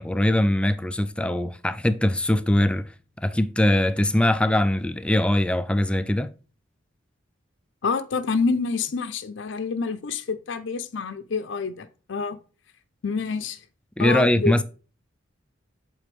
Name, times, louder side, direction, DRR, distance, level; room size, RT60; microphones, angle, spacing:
voice 1, 0.0-2.9 3.2-6.3 14.0-14.6, left 1 dB, 5° left, 0.3 m, -22 dB
voice 2, 7.8-12.4 13.0-13.6 14.0-14.6, left 4 dB, 65° left, 0.5 m, -27 dB
8.2 x 4.0 x 3.3 m
head